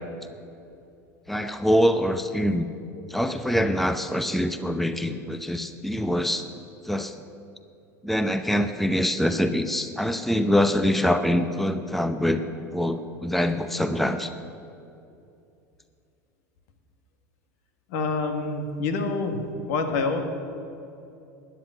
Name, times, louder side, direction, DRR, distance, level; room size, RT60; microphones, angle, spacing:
voice 1, 1.3-2.7 3.1-6.4 6.8-7.1 8.0-14.3, equal, ahead, 10 dB, 0.7 m, -24 dB
voice 2, 17.9-20.2, left 3 dB, 65° left, 6 dB, 1.7 m, -27 dB
13.0 x 10.0 x 7.8 m, 2.6 s
hypercardioid pair, 85°, 9 cm